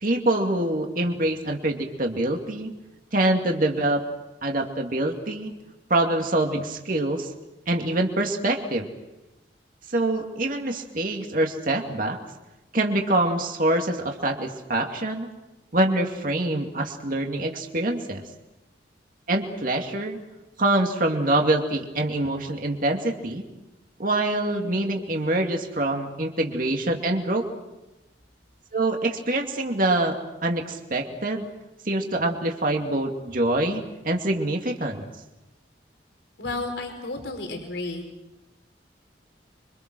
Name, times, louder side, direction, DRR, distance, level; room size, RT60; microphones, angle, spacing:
voice 1, 0.0-2.7 3.1-4.0 4.4-5.5 5.9-7.3 7.7-8.9 9.9-12.2 12.7-15.3 15.7-18.2 19.3-20.2 20.6-23.4 24.0-27.4 28.7-31.5 31.8-35.1, right 1 dB, 50° right, 2 dB, 2.5 m, -25 dB
voice 2, 36.4-38.0, left 2 dB, 80° left, 3 dB, 4.9 m, -32 dB
27.5 x 25.0 x 6.2 m, 1.0 s
head